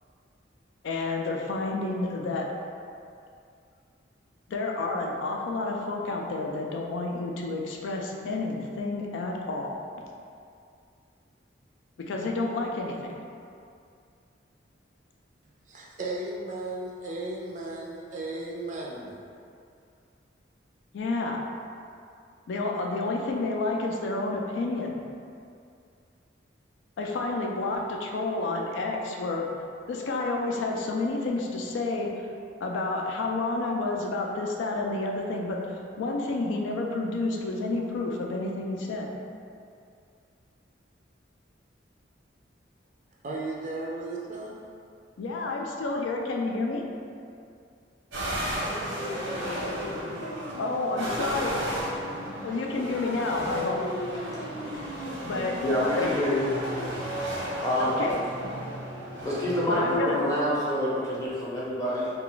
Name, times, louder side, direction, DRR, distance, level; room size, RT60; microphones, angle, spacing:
voice 1, 0.8-2.5 4.5-9.8 12.0-13.2 20.9-21.4 22.5-24.9 27.0-29.5 29.9-32.1 32.6-39.1 45.2-46.8 50.6-51.6 52.4-53.8 55.2-55.6 56.0-56.1 57.8-58.2 59.7-60.2, left 3 dB, 80° left, 0 dB, 0.4 m, -30 dB
voice 2, 15.7-19.2 43.2-44.6 50.1-50.3, right 2 dB, 40° right, -3 dB, 0.4 m, -35 dB
sound 1, 48.1-60.0, equal, 85° right, 0.9 m, -33 dB
voice 3, 55.0-56.5 56.8-57.0 57.6-58.0 59.2-62.1, equal, 20° left, -8 dB, 0.6 m, -27 dB
2.3 x 2.2 x 3.8 m, 2.4 s
head